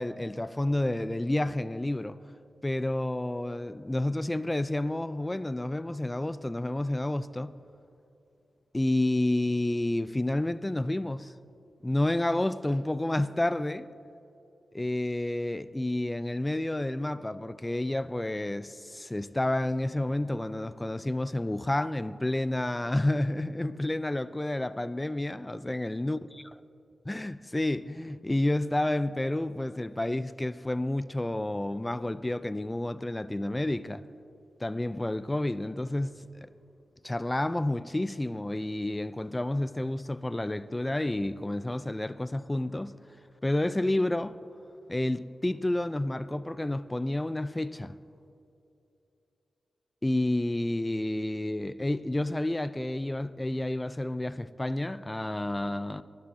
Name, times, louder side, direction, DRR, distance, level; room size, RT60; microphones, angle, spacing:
voice 1, 0.0-2.2 2.6-7.5 8.7-11.3 11.8-13.9 14.7-26.2 27.1-34.0 34.6-36.2 37.0-42.9 43.4-44.4 44.9-48.0 50.0-56.0, left 1 dB, 15° left, 0.3 m, -30 dB
16.0 x 11.5 x 2.7 m
wide cardioid pair, 90°, 0 cm